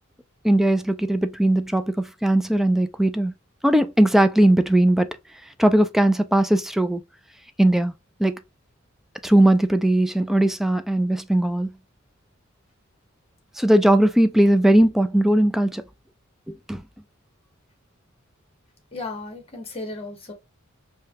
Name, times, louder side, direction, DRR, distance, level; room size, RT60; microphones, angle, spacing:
voice 1, 0.4-3.3 3.6-5.1 5.6-7.0 7.6-7.9 8.2-8.4 9.2-11.7 13.6-15.8 16.7-16.8, right 1 dB, ahead, 0.3 m, -19 dB
voice 2, 18.9-20.3, left 2 dB, 30° left, 1.2 m, -34 dB
4.8 x 2.2 x 2.8 m
head